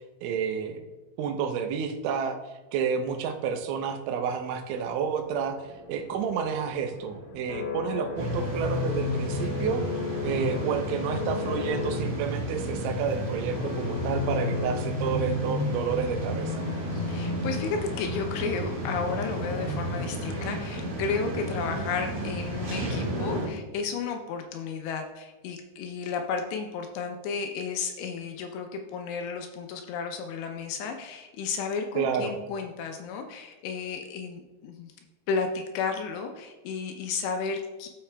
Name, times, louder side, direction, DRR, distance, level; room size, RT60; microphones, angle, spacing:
voice 1, 0.2-0.8 1.2-2.4 2.7-5.6 5.9-9.9 10.2-16.5 32.0-32.3, right 6 dB, 90° right, 5 dB, 3.2 m, -30 dB
sound 1, 4.7-20.9, left 6 dB, 60° left, 2.3 m, -39 dB
sound 2, 8.2-23.5, equal, 55° right, 1.7 m, -31 dB
voice 2, 16.9-35.0 35.3-37.9, left 5 dB, 80° left, 4 dB, 2.6 m, -33 dB
14.0 x 5.6 x 2.2 m, 1.1 s
omnidirectional pair, 5.3 m